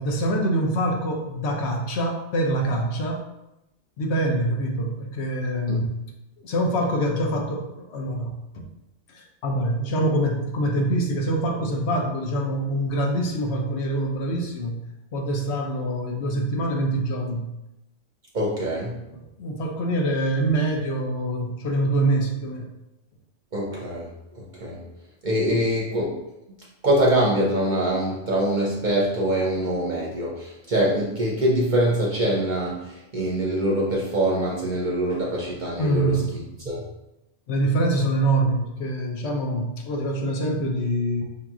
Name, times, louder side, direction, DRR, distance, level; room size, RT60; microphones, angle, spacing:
voice 1, 0.0-3.2 4.0-5.9 6.4-8.7 9.1-14.8 15.1-17.5 19.4-22.7 35.8-36.3 37.5-41.2, right 1 dB, 65° left, 1 dB, 0.8 m, -25 dB
voice 2, 18.3-19.0 23.5-24.1 24.3-24.8 25.2-26.2 26.8-36.9, right 1 dB, 50° right, -3 dB, 0.6 m, -24 dB
5.2 x 2.8 x 2.3 m, 0.92 s
omnidirectional pair, 1.3 m